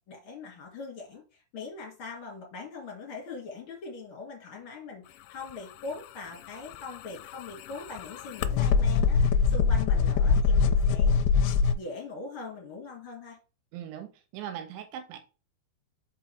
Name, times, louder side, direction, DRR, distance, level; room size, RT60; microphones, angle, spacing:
voice 1, 0.1-1.2 1.5-11.2 11.7-13.4, left 4 dB, 35° left, 2.6 m, -41 dB
sound 1, 6.6-11.7, left 5 dB, 80° left, 2.7 m, -23 dB
voice 2, 13.7-15.2, right 10 dB, 85° right, 3.4 m, -40 dB
5.9 x 5.4 x 3.4 m
omnidirectional pair, 5.2 m